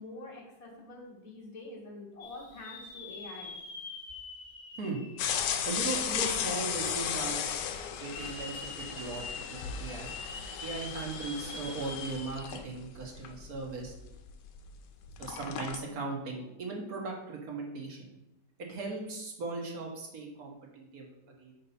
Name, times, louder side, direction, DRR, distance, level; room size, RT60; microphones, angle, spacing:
voice 1, 0.0-3.5, left 2 dB, 25° left, -2 dB, 1.2 m, -46 dB
sound 1, 2.2-6.2 6.7-6.8 7.9-12.8 13.2-13.3 15.2-15.4, left 4 dB, 55° left, 1.0 m, -45 dB
sound 2, 5.2-14.8 15.0-15.8, left 8 dB, 85° left, 1.3 m, -35 dB
voice 2, 5.6-7.6 7.9-10.1 10.6-13.9 15.2-18.1 18.6-21.5, right 3 dB, 60° right, 0 dB, 1.5 m, -38 dB
4.6 x 4.2 x 5.4 m, 0.91 s
omnidirectional pair, 1.9 m